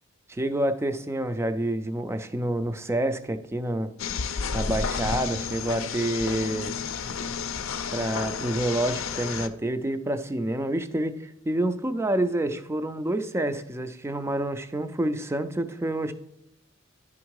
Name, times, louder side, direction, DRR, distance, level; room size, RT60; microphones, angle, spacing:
voice 1, 0.3-3.9 4.5-6.8 7.9-16.1, right 1 dB, 15° right, 10 dB, 0.4 m, -28 dB
sound 1, 4.0-9.5, left 5 dB, 70° left, 0.5 m, -31 dB
10.5 x 3.6 x 4.7 m, 0.76 s
head